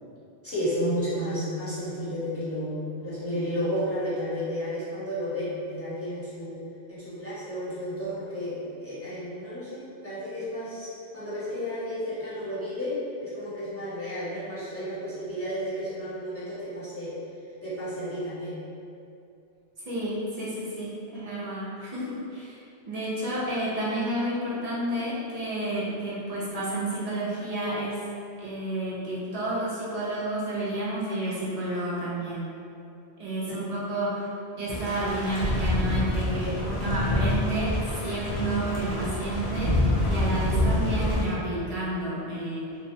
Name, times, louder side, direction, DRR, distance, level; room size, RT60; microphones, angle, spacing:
voice 1, 0.4-6.6 6.9-17.1 17.6-18.6 33.5-33.7, equal, 15° left, -13 dB, 0.8 m, -32 dB
voice 2, 19.8-22.6 22.9-28.1 28.4-32.5 33.2-34.3 34.5-37.8 38.0-42.8, right 1 dB, 50° right, -8 dB, 0.5 m, -31 dB
sound 1, 34.7-41.2, left 1 dB, 85° left, 0.9 m, -26 dB
2.7 x 2.1 x 2.7 m, 2.6 s
omnidirectional pair, 1.1 m